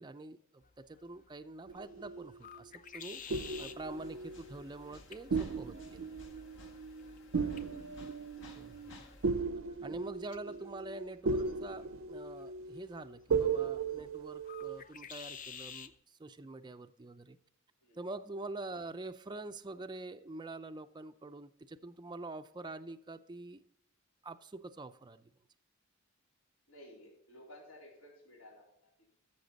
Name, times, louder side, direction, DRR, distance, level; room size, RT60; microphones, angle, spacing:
voice 1, 0.0-3.2 3.6-6.0 8.5-8.7 9.8-17.4 18.0-23.6 24.2-25.3, right 2 dB, 20° right, 8 dB, 0.4 m, -45 dB
sound 1, 0.6-16.0, left 7 dB, 40° left, 0.6 m, -54 dB
sound 2, 1.7-2.7 3.3-5.0 5.3-14.8, right 5 dB, 65° right, 0.6 m, -37 dB
sound 3, 3.2-9.3, left 2 dB, 60° left, 1.4 m, -56 dB
voice 2, 7.2-7.9 10.4-10.7 17.8-18.0 26.7-29.1, left 1 dB, 80° left, -4 dB, 4.1 m, -56 dB
13.0 x 7.1 x 4.0 m, 0.76 s
head